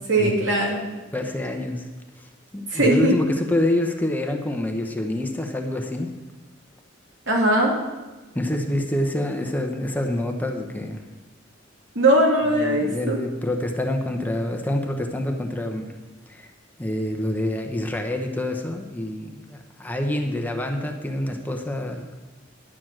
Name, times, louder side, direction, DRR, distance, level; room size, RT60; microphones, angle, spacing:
voice 1, 0.1-0.8 2.7-3.1 7.3-7.7 11.9-13.2, right 1 dB, 70° right, -2 dB, 2.9 m, -19 dB
voice 2, 1.1-1.9 2.2-2.3 2.5-6.1 8.3-11.0 12.5-15.9 16.3-16.5 16.8-22.1, left 1 dB, 10° left, 3 dB, 0.9 m, -26 dB
11.0 x 6.9 x 7.5 m, 1.2 s
head